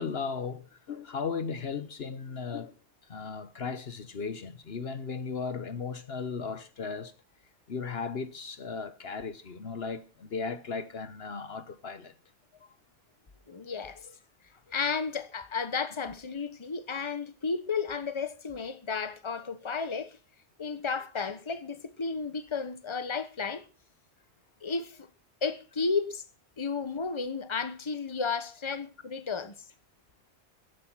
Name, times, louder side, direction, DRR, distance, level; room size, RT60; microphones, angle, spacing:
voice 1, 0.0-2.7 3.0-7.1 7.7-12.1, left 5 dB, 60° left, 1.2 m, -36 dB
voice 2, 13.5-14.2 14.7-20.2 20.6-23.6 24.6-25.1 25.4-26.2 26.6-29.5, left 5 dB, 25° left, 1.2 m, -33 dB
14.5 x 10.5 x 5.7 m
omnidirectional pair, 1.2 m